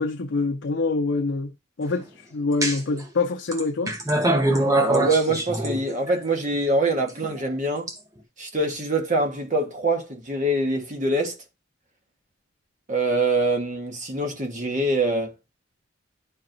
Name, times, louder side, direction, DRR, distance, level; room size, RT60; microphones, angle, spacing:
voice 1, 0.0-1.5 1.8-4.0, left 3 dB, 80° left, 0.6 m, -25 dB
sound 1, 2.6-3.0 3.5-6.2 7.1-7.9, right 1 dB, 20° right, 0.9 m, -24 dB
voice 2, 4.8-7.9 8.4-11.4 12.9-15.3, right 2 dB, 40° right, 1.3 m, -24 dB
10.5 x 4.6 x 2.6 m
head